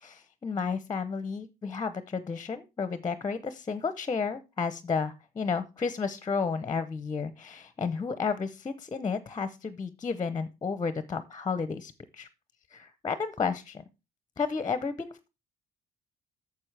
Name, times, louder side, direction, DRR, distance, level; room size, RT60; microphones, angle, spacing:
voice 1, 0.0-12.3 12.7-13.8 14.4-15.3, left 5 dB, 25° left, 13 dB, 0.6 m, -32 dB
9.6 x 6.9 x 3.3 m, 0.27 s
cardioid pair, 110°, 17 cm